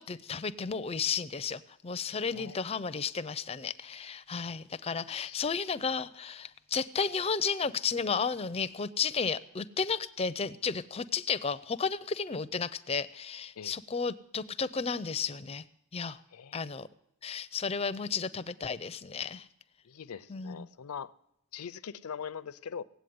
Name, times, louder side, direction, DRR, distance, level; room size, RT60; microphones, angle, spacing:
voice 1, 0.0-15.6 15.9-16.2 16.5-16.9 17.2-19.5 20.3-20.7, left 5 dB, 25° left, 0.5 m, -33 dB
voice 2, 2.3-2.7 5.1-5.4 13.6-13.7 16.3-16.7 19.8-21.1 21.5-22.8, left 7 dB, 85° left, 0.5 m, -42 dB
17.5 x 8.2 x 9.4 m
head